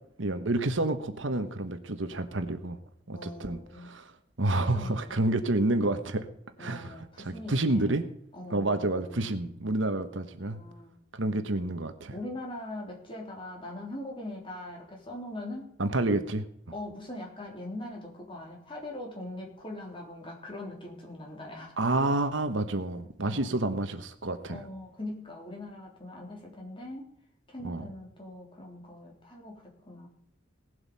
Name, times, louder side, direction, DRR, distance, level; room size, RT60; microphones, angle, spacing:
voice 1, 0.2-2.8 3.1-3.6 3.9-4.0 4.4-6.3 6.6-8.1 8.5-10.6 11.1-12.1 15.8-16.5 21.8-24.6 27.6-27.9, right 2 dB, 70° right, 8 dB, 1.3 m, -29 dB
voice 2, 3.1-3.9 4.6-5.1 6.6-8.1 8.3-9.4 10.4-11.0 12.1-15.7 16.7-21.8 23.2-23.7 24.5-27.1 27.5-30.1, left 1 dB, 25° left, 0 dB, 3.6 m, -41 dB
18.0 x 8.0 x 5.6 m, 0.73 s
head